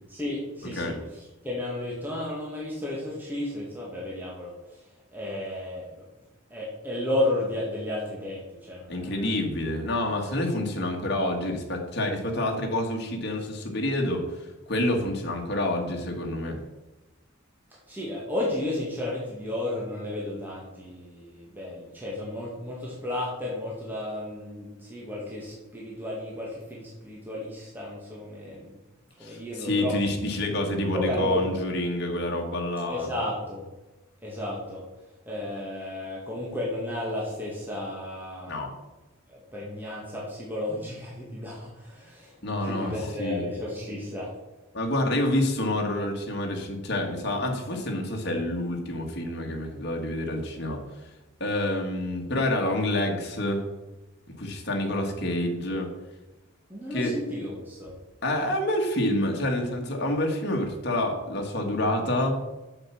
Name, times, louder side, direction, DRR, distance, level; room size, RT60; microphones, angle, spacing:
voice 1, 0.1-4.5 5.1-5.9 6.5-9.4 17.9-28.8 29.2-29.9 30.9-31.4 32.9-33.6 34.2-34.8 35.3-38.6 39.3-42.3 42.6-44.3 56.7-57.9, left 1 dB, 10° right, -5 dB, 1.9 m, -33 dB
voice 2, 8.9-14.3 14.7-16.6 29.2-33.1 38.5-38.7 42.4-42.9 43.2-43.5 44.7-50.8 51.4-53.6 54.4-55.9 56.9-57.2 58.2-62.4, left 1 dB, 50° left, 1 dB, 1.8 m, -28 dB
7.8 x 7.3 x 5.9 m, 1.1 s
head